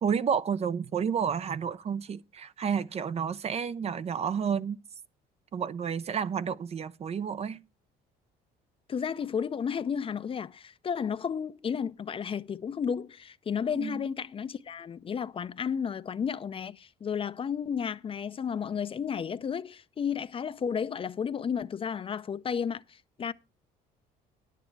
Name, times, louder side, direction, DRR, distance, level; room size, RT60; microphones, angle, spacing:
voice 1, 0.0-4.8 5.5-7.6 13.8-14.1, right 7 dB, 40° right, 0.5 m, -30 dB
voice 2, 8.9-23.3, left 7 dB, 35° left, 0.5 m, -32 dB
10.5 x 9.1 x 4.6 m
cardioid pair, 110°, 17 cm